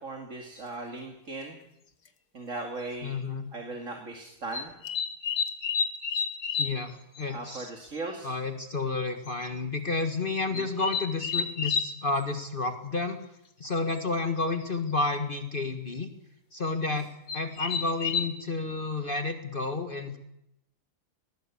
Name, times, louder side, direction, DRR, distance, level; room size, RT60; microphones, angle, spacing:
voice 1, 0.0-1.6 2.3-3.1 3.5-4.7 7.3-8.3 10.5-10.7, right 2 dB, 50° right, 2 dB, 2.7 m, -38 dB
sound 1, 0.6-0.7 2.1-2.2 2.9-3.1 4.5-6.8 7.1-7.3 7.6-7.7 8.0-8.1 8.3-8.4 9.3-9.5 10.5-11.9 14.0-14.1 14.4-14.7 16.6-16.7 17.3-18.3, left 6 dB, 80° left, 2.1 m, -30 dB
voice 2, 3.0-3.5 6.6-7.9 8.2-13.2 13.6-16.1 16.5-17.1 17.3-20.2, left 3 dB, 35° left, 6 dB, 1.7 m, -31 dB
20.0 x 19.5 x 8.5 m, 0.82 s
omnidirectional pair, 1.7 m